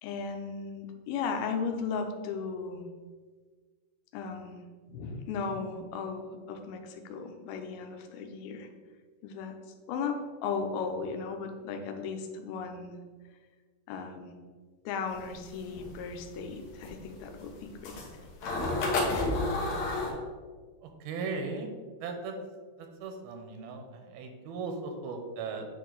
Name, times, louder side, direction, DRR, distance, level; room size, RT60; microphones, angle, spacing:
voice 1, 0.0-2.9 4.1-4.6 4.9-8.7 9.2-9.5 9.9-13.0 13.9-14.3 14.9-18.0, left 5 dB, 85° left, 5 dB, 2.6 m, -36 dB
sound 1, 15.1-20.1, left 2 dB, 65° left, 1.9 m, -30 dB
voice 2, 20.8-21.7 22.0-22.4 22.8-25.7, right 4 dB, 85° right, 5 dB, 2.7 m, -37 dB
8.0 x 4.7 x 3.9 m, 1.5 s
omnidirectional pair, 4.3 m